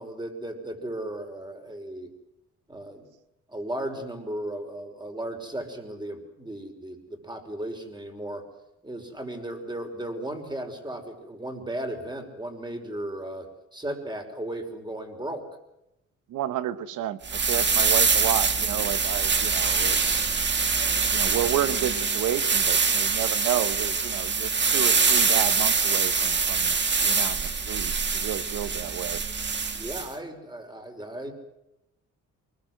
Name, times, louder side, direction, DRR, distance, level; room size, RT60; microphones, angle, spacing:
voice 1, 0.0-2.1 2.7-3.1 3.5-8.4 8.8-15.5 29.7-31.3, right 1 dB, 15° right, 5 dB, 5.4 m, -35 dB
voice 2, 16.3-20.3 21.1-29.2, right 12 dB, 85° right, 13 dB, 1.4 m, -31 dB
sound 1, 17.2-30.1, right 5 dB, 35° right, 2.3 m, -24 dB
24.0 x 21.0 x 8.0 m, 0.87 s
cardioid pair, 90°, 30 cm